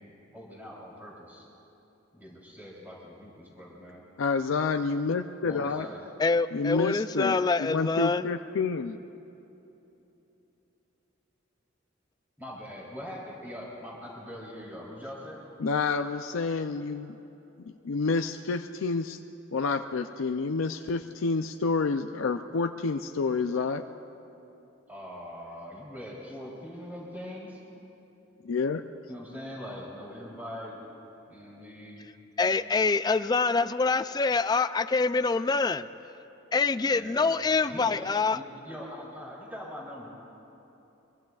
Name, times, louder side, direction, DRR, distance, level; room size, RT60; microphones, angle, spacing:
voice 1, 0.0-1.4 2.1-4.0 5.4-6.0 12.4-15.4 24.9-27.6 29.1-30.8 31.3-32.1 36.9-38.1 38.3-40.1, equal, 10° right, -5 dB, 3.3 m, -42 dB
voice 2, 4.2-5.9 6.5-9.0 15.6-17.1 17.8-19.2 19.5-23.8 28.4-28.8, left 4 dB, 90° left, 6 dB, 0.5 m, -29 dB
voice 3, 6.2-8.3 32.4-35.9 36.5-38.4, left 4 dB, 20° left, 13 dB, 0.3 m, -25 dB
24.5 x 22.5 x 2.4 m, 3.0 s
head